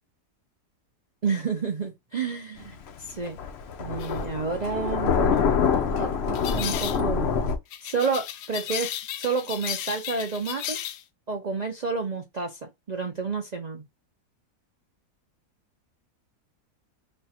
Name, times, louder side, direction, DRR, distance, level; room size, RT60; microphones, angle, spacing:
voice 1, 1.2-3.4 3.8-5.6 5.9-7.3 7.8-8.9 9.2-10.8 11.3-13.8, right 4 dB, 65° right, 0.4 m, -30 dB
Thunder, 2.6-7.6, left 6 dB, 60° left, 0.7 m, -25 dB
sound 1, 4.0-4.2 6.4-7.0 7.7-11.0, left 11 dB, 80° left, 1.1 m, -34 dB
3.3 x 2.2 x 4.1 m
omnidirectional pair, 1.7 m